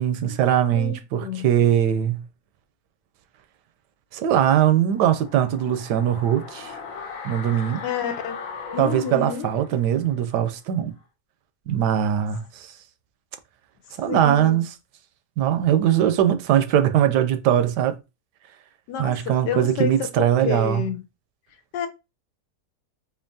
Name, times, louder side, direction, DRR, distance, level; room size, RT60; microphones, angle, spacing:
voice 1, 0.0-2.2 4.1-6.7 7.2-7.8 8.8-11.0 11.7-12.7 14.0-14.7 15.4-18.0 19.0-20.9, right 10 dB, 80° right, 1.2 m, -21 dB
voice 2, 0.7-1.5 7.8-8.4 8.7-9.5 14.1-14.6 18.9-21.0 21.7-21.9, left 8 dB, 90° left, 1.3 m, -29 dB
sound 1, 4.9-10.0 10.3-10.4, left 5 dB, 60° left, 1.2 m, -38 dB
4.4 x 2.8 x 2.7 m
omnidirectional pair, 1.8 m